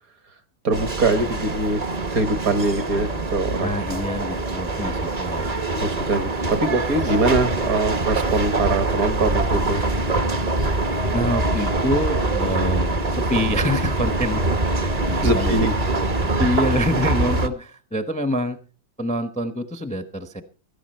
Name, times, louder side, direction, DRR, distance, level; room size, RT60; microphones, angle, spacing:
voice 1, 0.6-1.8 2.1-3.8 5.8-9.8 15.2-15.7, right 2 dB, 55° right, 12 dB, 1.5 m, -23 dB
sound 1, 0.7-17.5, right 2 dB, 35° right, 0.7 m, -24 dB
voice 2, 3.6-5.5 11.1-15.7 16.2-18.6 19.0-20.4, left 1 dB, 5° left, 10 dB, 0.5 m, -26 dB
16.0 x 13.0 x 4.4 m, 0.35 s
omnidirectional pair, 2.1 m